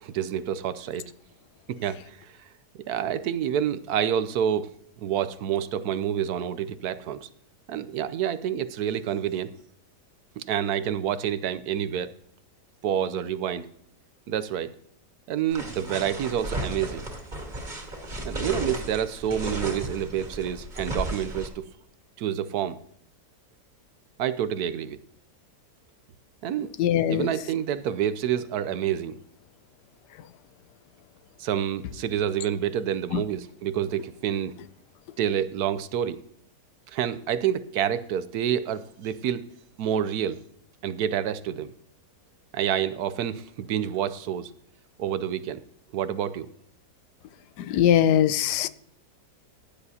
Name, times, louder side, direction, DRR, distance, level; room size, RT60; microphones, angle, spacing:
voice 1, 0.0-1.1 1.7-2.4 2.9-7.3 7.7-9.5 10.4-12.1 12.8-13.7 14.3-14.8 15.3-17.0 18.2-21.6 22.2-22.8 24.2-25.0 26.4-26.7 27.1-29.1 31.4-34.5 35.2-36.2 36.9-39.4 39.8-40.4 40.8-41.7 42.5-44.5 45.0-45.6 45.9-46.5, right 9 dB, 70° right, 14 dB, 1.1 m, -28 dB
sound 1, 15.5-21.5, right 1 dB, 25° right, 2.1 m, -34 dB
voice 2, 26.8-27.3 47.7-48.7, left 10 dB, 80° left, 15 dB, 1.2 m, -21 dB
15.5 x 10.0 x 2.8 m, 0.67 s
omnidirectional pair, 1.8 m